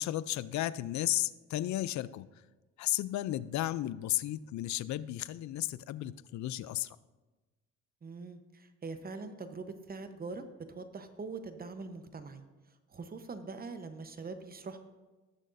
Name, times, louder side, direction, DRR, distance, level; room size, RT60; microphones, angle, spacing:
voice 1, 0.0-2.3 2.8-7.0, left 14 dB, 70° left, 17 dB, 0.4 m, -34 dB
voice 2, 8.0-14.8, right 4 dB, 30° right, 9 dB, 0.9 m, -43 dB
18.5 x 6.4 x 2.6 m, 1.2 s
cardioid pair, 90°, 30 cm